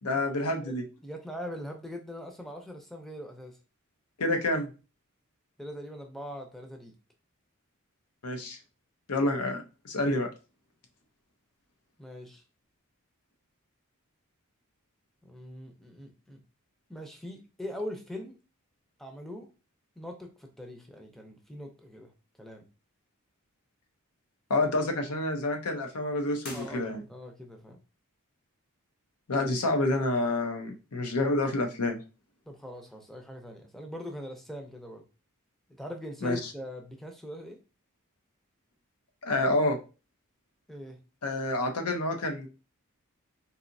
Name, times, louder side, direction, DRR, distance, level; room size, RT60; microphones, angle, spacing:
voice 1, 0.0-0.8 4.2-4.7 8.2-8.6 9.1-10.3 24.5-27.0 29.3-32.0 36.2-36.5 39.2-39.8 41.2-42.5, left 2 dB, 90° left, 4 dB, 0.7 m, -28 dB
voice 2, 1.0-3.6 5.6-6.9 12.0-12.4 15.2-16.4 16.9-18.4 19.0-19.5 20.0-22.1 22.4-22.6 26.5-27.8 32.5-35.0 35.8-37.6 40.7-41.0, equal, ahead, 3 dB, 0.5 m, -41 dB
sound 1, 26.4-27.4, left 2 dB, 45° left, 0.9 m, -47 dB
4.0 x 2.7 x 2.6 m, 0.32 s
head